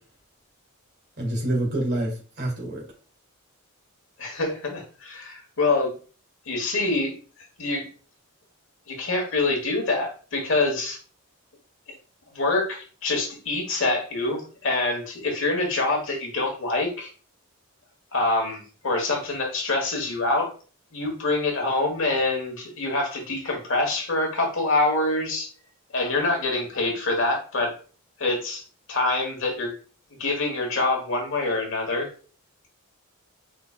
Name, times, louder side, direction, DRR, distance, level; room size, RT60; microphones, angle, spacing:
voice 1, 1.2-2.8, right 1 dB, 50° right, -1 dB, 1.9 m, -27 dB
voice 2, 4.2-5.9 6.5-7.1 7.6-7.9 8.9-11.0 12.3-17.1 18.1-20.5 20.9-25.5 25.9-27.7 28.2-28.6 28.9-29.7 30.2-32.1, left 2 dB, 60° left, 2 dB, 1.3 m, -25 dB
4.8 x 3.8 x 2.4 m, 0.38 s
head